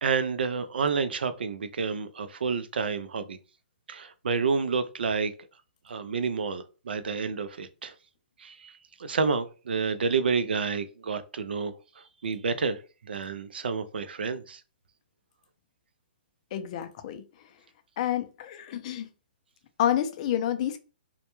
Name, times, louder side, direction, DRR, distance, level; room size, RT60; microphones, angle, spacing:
voice 1, 0.0-3.4 3.9-5.3 5.9-7.9 8.4-8.7 9.0-11.7 12.2-12.8 13.0-14.6, right 5 dB, 90° right, 0.4 m, -29 dB
voice 2, 16.5-17.2 18.0-19.1 19.8-20.8, left 10 dB, 40° left, 0.4 m, -28 dB
2.2 x 2.1 x 2.9 m
hypercardioid pair, 150°, 5 cm